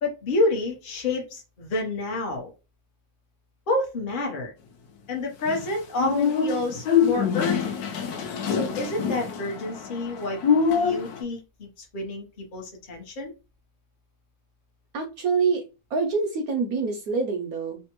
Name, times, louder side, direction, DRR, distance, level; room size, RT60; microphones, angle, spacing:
voice 1, 0.0-2.5 3.7-4.5 5.1-7.8 8.6-10.4 10.7-12.3 12.5-13.3, left 2 dB, 45° left, 1 dB, 0.7 m, -29 dB
sound 1, 5.5-11.2, left 6 dB, 70° left, 1.0 m, -25 dB
voice 2, 14.9-15.6 15.9-17.8, right 4 dB, 70° right, 2 dB, 0.9 m, -25 dB
3.4 x 2.1 x 2.9 m, 0.30 s
omnidirectional pair, 2.0 m